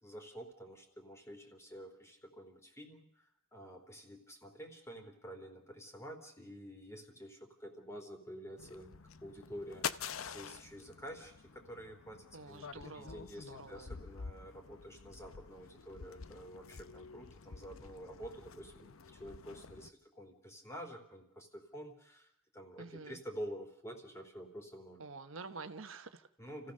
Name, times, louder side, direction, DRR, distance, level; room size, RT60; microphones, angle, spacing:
voice 1, 0.0-25.0 26.4-26.7, equal, 15° left, 4 dB, 3.3 m, -49 dB
sound 1, 8.6-19.9, left 6 dB, 75° left, 0.7 m, -47 dB
voice 2, 12.3-13.9 22.8-23.2 25.0-26.3, right 4 dB, 70° right, 8 dB, 1.1 m, -48 dB
29.0 x 15.5 x 6.6 m, 0.78 s
head